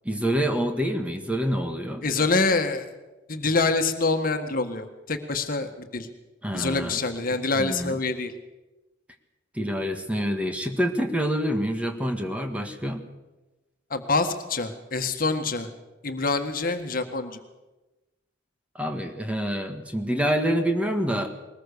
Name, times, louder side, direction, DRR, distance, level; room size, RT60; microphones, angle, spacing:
voice 1, 0.1-2.0 6.4-7.0 7.3-8.0 9.5-13.0 18.8-21.3, equal, 5° right, 4 dB, 1.7 m, -27 dB
voice 2, 2.0-2.9 3.3-6.1 6.5-8.3 13.9-15.7 16.0-17.4, left 3 dB, 50° left, 6 dB, 1.7 m, -26 dB
21.5 x 20.0 x 6.9 m, 1.1 s
head